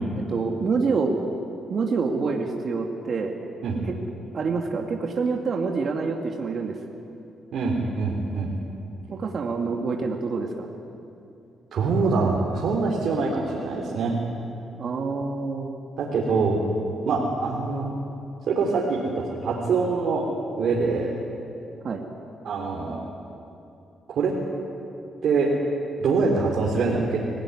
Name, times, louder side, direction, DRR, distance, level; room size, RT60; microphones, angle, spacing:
voice 1, 0.3-1.2 1.7-3.3 3.9-4.0 4.3-6.8 9.1-10.7 14.8-15.8 21.8-22.1, right 4 dB, 55° right, 2 dB, 2.1 m, -27 dB
voice 2, 7.5-8.5 11.7-14.1 16.0-16.6 17.0-17.9 18.5-20.2 20.6-21.1 22.4-23.0 24.1-24.3 25.2-25.5 26.0-27.2, right 4 dB, 70° right, -3 dB, 3.7 m, -24 dB
24.5 x 17.0 x 9.9 m, 2.7 s
cardioid pair, 90°, 0 cm